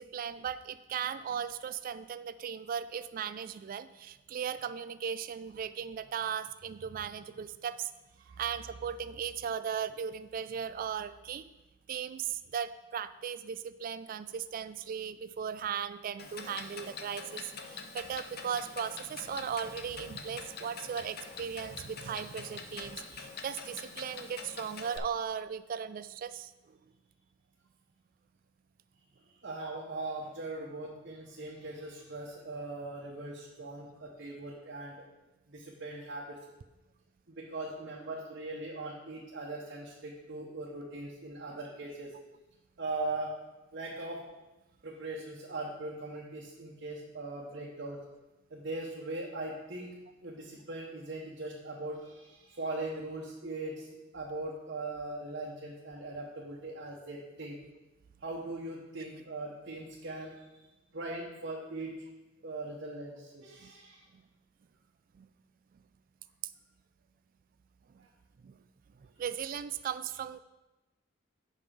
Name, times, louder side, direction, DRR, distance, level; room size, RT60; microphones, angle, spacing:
voice 1, 0.0-7.9 8.4-11.5 11.9-26.5 63.6-63.7 65.2-65.3 68.4-68.5 69.2-70.4, right 7 dB, 45° right, 13 dB, 0.3 m, -37 dB
Clock, 16.2-25.0, left 5 dB, 50° left, 0.7 m, -45 dB
voice 2, 29.4-35.0 35.5-36.4 37.3-42.1 42.8-43.3 43.7-44.2 44.8-48.0 48.5-49.9 50.2-53.9 54.1-57.6 58.2-60.6 60.9-61.9 62.4-64.0 68.0-68.1, right 2 dB, 60° right, -4 dB, 1.1 m, -40 dB
7.6 x 5.3 x 4.9 m, 1.1 s
head